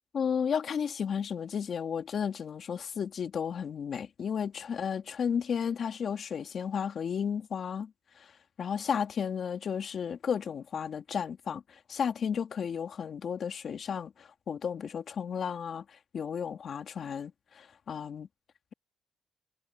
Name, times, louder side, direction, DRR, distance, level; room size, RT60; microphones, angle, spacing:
voice 1, 0.1-7.9 8.6-11.6 11.9-15.8 16.1-18.3, left 7 dB, 55° left, 2.5 m, -33 dB
cardioid pair, 90°, 0 cm